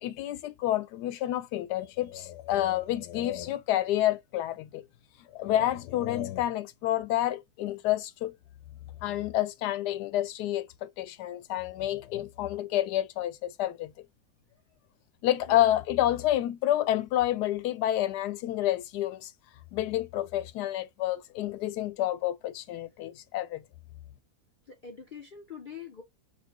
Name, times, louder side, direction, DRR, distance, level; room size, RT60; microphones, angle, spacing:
voice 1, 0.0-4.8 5.3-8.3 9.0-13.9 15.2-19.3 19.7-23.6, left 13 dB, 85° left, 1.2 m, -29 dB
voice 2, 24.7-26.0, left 6 dB, 70° left, 0.4 m, -44 dB
4.4 x 2.3 x 2.8 m
omnidirectional pair, 1.7 m